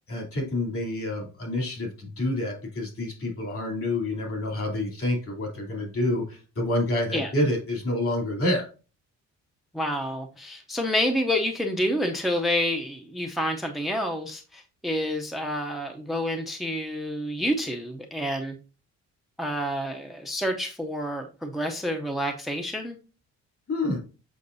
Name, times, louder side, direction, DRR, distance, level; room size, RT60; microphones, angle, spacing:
voice 1, 0.1-8.7 23.7-24.0, left 1 dB, 50° left, 1 dB, 2.9 m, -28 dB
voice 2, 9.7-18.6 19.4-23.0, equal, ahead, 4 dB, 0.6 m, -28 dB
6.9 x 5.8 x 2.6 m, 0.35 s
cardioid pair, 135°, 29 cm